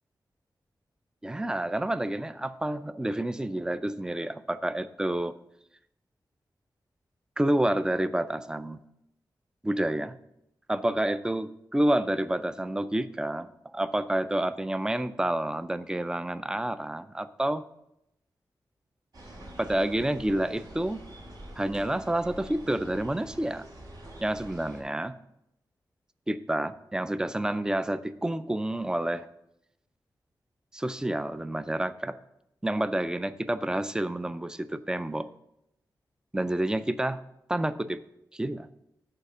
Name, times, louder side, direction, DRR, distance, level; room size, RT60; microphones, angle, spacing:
voice 1, 1.2-5.3 7.4-8.8 9.6-10.2 10.7-17.6 19.6-21.0 21.6-23.6 24.2-25.2 26.3-29.3 30.7-32.2 32.6-35.3 36.3-37.2 37.5-38.0 38.3-38.7, right 1 dB, 10° right, 13 dB, 0.3 m, -29 dB
sound 1, 19.1-24.8, right 1 dB, 65° right, 2.3 m, -46 dB
6.8 x 4.8 x 6.0 m, 0.82 s
wide cardioid pair, 140°, 8 cm